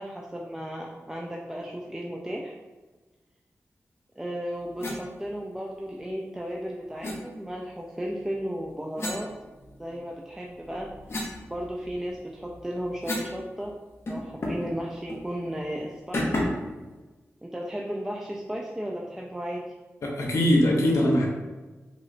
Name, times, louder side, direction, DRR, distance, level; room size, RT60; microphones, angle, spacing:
voice 1, 0.0-2.5 4.2-9.3 9.8-10.9 11.5-13.7 14.1-16.5 17.4-19.6, equal, 10° right, -2 dB, 0.3 m, -34 dB
sound 1, 4.8-5.0 7.0-7.2 9.0-10.0 10.5-13.4 13.7-13.8 14.1-14.7 15.1-15.3 16.1-16.7, left 1 dB, 55° left, 0.7 m, -33 dB
voice 2, 20.0-21.3, equal, 90° left, -1 dB, 0.6 m, -21 dB
3.0 x 2.9 x 2.5 m, 1.2 s
wide cardioid pair, 85°, 5 cm